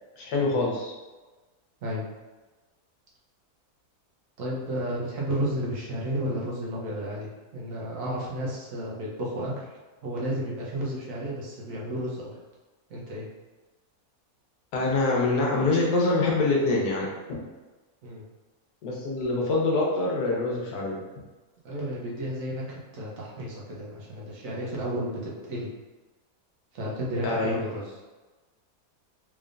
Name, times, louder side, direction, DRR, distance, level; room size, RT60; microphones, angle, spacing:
voice 1, 0.2-0.9 14.7-17.4 18.8-21.0 27.2-27.6, left 2 dB, 80° left, -2 dB, 1.4 m, -25 dB
voice 2, 4.4-9.5 10.0-12.3 12.9-13.3 18.0-18.2 21.6-25.7 26.7-27.8, right 1 dB, 65° right, -4 dB, 1.2 m, -32 dB
3.7 x 3.4 x 2.5 m, 1.2 s
omnidirectional pair, 1.6 m